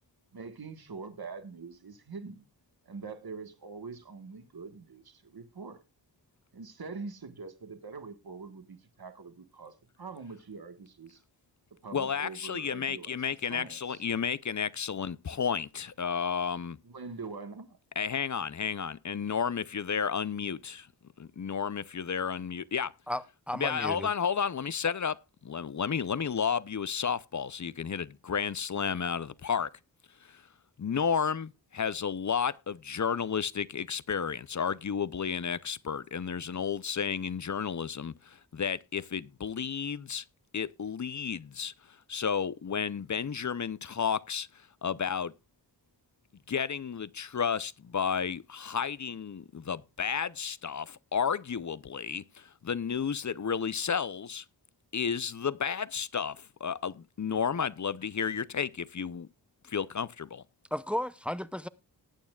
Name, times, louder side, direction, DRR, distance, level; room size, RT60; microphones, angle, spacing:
voice 1, 0.3-2.4 2.8-5.8 6.5-11.2 11.7-13.2 13.5-14.1 16.8-17.8, right 4 dB, 55° right, 1.5 m, -44 dB
voice 2, 11.9-16.8 18.0-20.9 21.2-22.9 23.5-25.2 25.4-29.7 30.2-30.4 30.8-40.2 40.5-45.3 46.5-54.4 54.9-59.3 59.7-60.4, left 7 dB, 45° left, 0.6 m, -32 dB
voice 3, 23.1-24.1 60.7-61.7, left 1 dB, 5° right, 0.6 m, -34 dB
19.0 x 8.7 x 2.3 m
wide cardioid pair, 55°, 43 cm